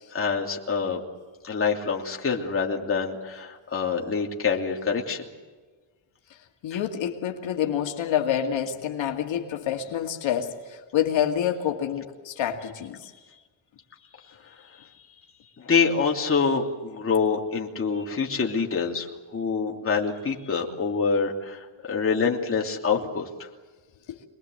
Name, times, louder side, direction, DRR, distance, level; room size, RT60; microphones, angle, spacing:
voice 1, 0.1-1.0 1.4-5.2 15.6-23.5, left 5 dB, 25° left, 0 dB, 3.0 m, -26 dB
voice 2, 6.6-13.0 24.1-24.2, left 9 dB, 75° left, 3 dB, 2.3 m, -27 dB
27.0 x 21.0 x 7.9 m, 1.4 s
cardioid pair, 155°, 47 cm